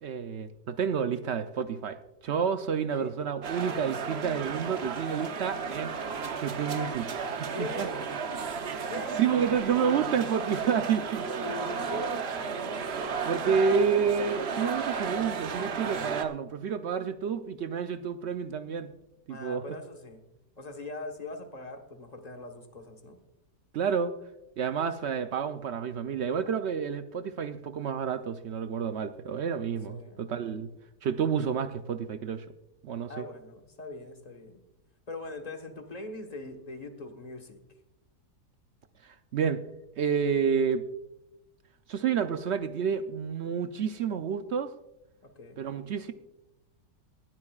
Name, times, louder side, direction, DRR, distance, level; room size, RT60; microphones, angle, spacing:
voice 1, 0.0-2.0 2.2-5.9 6.4-7.3 7.6-7.9 8.6-11.3 12.9-18.9 19.3-19.6 23.7-24.1 24.6-30.7 31.0-32.5 32.8-33.2 39.0-39.6 40.0-40.8 41.9-44.7 45.6-46.1, right 7 dB, 75° right, 9 dB, 0.6 m, -29 dB
sound 1, 3.4-16.2, right 5 dB, 50° right, 0.9 m, -33 dB
voice 2, 7.5-8.0 8.9-9.3 11.4-12.3 19.3-20.2 20.6-23.2 29.9-30.2 33.1-34.6 35.1-37.6 45.2-45.6, left 2 dB, 25° left, 4 dB, 1.2 m, -41 dB
19.5 x 12.0 x 2.4 m, 0.91 s
omnidirectional pair, 1.8 m